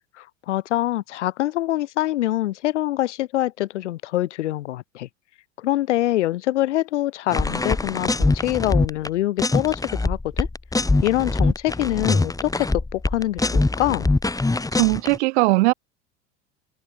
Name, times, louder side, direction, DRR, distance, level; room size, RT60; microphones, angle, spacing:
voice 1, 0.2-5.1 5.6-10.5 11.0-14.1, left 15 dB, 75° left, 5.2 m, -25 dB
sound 1, 7.3-9.1 9.4-15.2, left 2 dB, 10° left, 3.7 m, -23 dB
voice 2, 14.8-15.7, right 23 dB, 70° right, 3.2 m, -19 dB
open air
hypercardioid pair, 90°, 35 cm